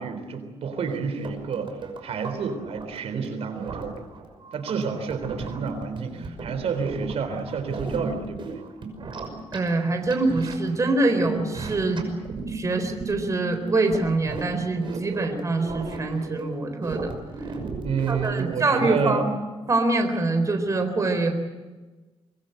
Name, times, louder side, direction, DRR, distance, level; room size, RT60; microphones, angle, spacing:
voice 1, 0.0-1.8 2.0-4.0 4.5-8.6 17.8-19.3, right 5 dB, 75° right, 8 dB, 3.6 m, -29 dB
sound 1, 0.7-18.7, right 4 dB, 50° right, 5.9 m, -36 dB
voice 2, 9.5-12.0 12.5-17.1 18.1-19.3 19.7-21.3, right 2 dB, 30° right, 6 dB, 3.9 m, -24 dB
25.0 x 21.0 x 7.9 m, 1.2 s
cardioid pair, 120°, 11 cm